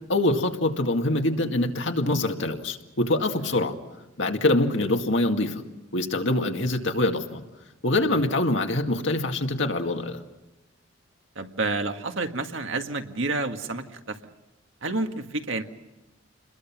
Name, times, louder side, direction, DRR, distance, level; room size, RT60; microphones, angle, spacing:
voice 1, 0.1-3.8 4.2-5.6 5.9-7.4 7.8-10.2, left 2 dB, 65° left, 4 dB, 2.2 m, -24 dB
voice 2, 11.4-14.2 14.8-15.6, right 3 dB, 70° right, 6 dB, 1.8 m, -30 dB
29.0 x 21.5 x 6.1 m, 1.1 s
head